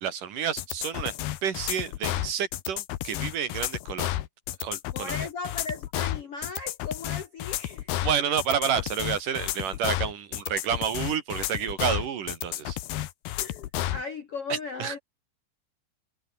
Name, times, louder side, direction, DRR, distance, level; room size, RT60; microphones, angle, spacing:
voice 1, 0.0-1.1 1.4-4.1 4.6-5.2 8.0-12.8 14.5-15.0, right 8 dB, 55° right, 3.1 m, -29 dB
sound 1, 0.6-14.0, left 14 dB, 70° left, 3.1 m, -32 dB
voice 2, 4.9-7.9 13.4-15.0, left 4 dB, 55° left, 1.7 m, -37 dB
omnidirectional pair, 4.8 m